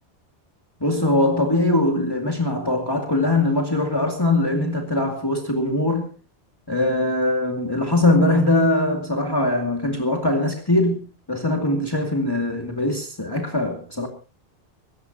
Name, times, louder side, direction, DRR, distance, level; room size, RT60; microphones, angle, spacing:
voice 1, 0.8-6.1 6.7-11.0 11.3-14.1, left 2 dB, 20° left, 2.5 m, -21 dB
26.0 x 14.5 x 2.8 m
omnidirectional pair, 1.1 m